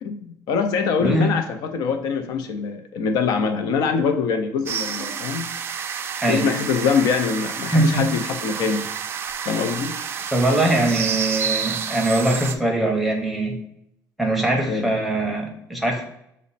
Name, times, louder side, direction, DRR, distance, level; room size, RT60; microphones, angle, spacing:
voice 1, 0.0-5.4 6.3-8.9 9.5-9.9 14.7-14.9, left 5 dB, 70° left, 7 dB, 0.5 m, -23 dB
sound 1, 4.7-12.6, right 7 dB, 35° right, 0.3 m, -29 dB
voice 2, 7.7-8.1 10.3-13.6 14.2-16.1, right 1 dB, ahead, 1 dB, 0.7 m, -21 dB
6.1 x 2.1 x 4.0 m, 0.76 s
cardioid pair, 165°, 7 cm